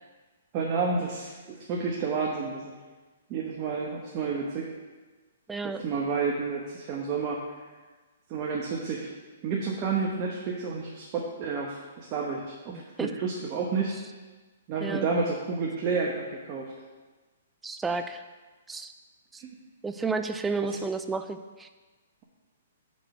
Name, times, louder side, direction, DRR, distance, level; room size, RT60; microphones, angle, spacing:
voice 1, 0.5-2.7 3.3-4.7 5.7-7.4 8.3-9.1 9.4-13.9 14.7-16.7 17.9-18.0 19.4-19.5 20.6-20.8, right 4 dB, 35° right, -2 dB, 1.1 m, -30 dB
voice 2, 5.5-5.8 12.7-13.1 14.8-15.1 17.6-18.2 18.7-18.9 19.3-19.4 19.8-21.7, right 4 dB, 10° right, 9 dB, 0.4 m, -32 dB
5.9 x 5.3 x 6.5 m, 1.3 s
hypercardioid pair, 140°, 0 cm